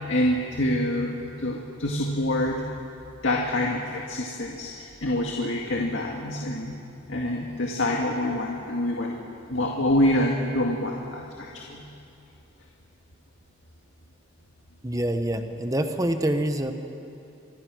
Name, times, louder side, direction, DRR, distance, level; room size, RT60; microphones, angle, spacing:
voice 1, 0.1-2.6 3.2-9.2 9.5-11.9, left 1 dB, 70° left, -1 dB, 2.0 m, -26 dB
voice 2, 14.8-16.7, right 1 dB, 15° right, 6 dB, 1.1 m, -26 dB
26.0 x 24.0 x 6.3 m, 2.7 s
head